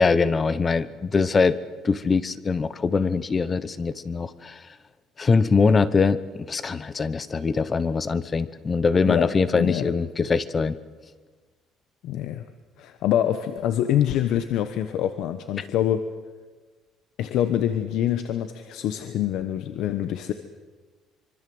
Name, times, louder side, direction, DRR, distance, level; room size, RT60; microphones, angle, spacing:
voice 1, 0.0-1.5 1.8-4.6 5.2-10.8, left 4 dB, 25° left, 16 dB, 0.9 m, -22 dB
voice 2, 9.1-9.9 12.0-12.5 12.8-16.1 17.2-20.3, left 11 dB, 65° left, 9 dB, 1.2 m, -25 dB
25.5 x 24.0 x 7.9 m, 1.3 s
cardioid pair, 150°, 0 cm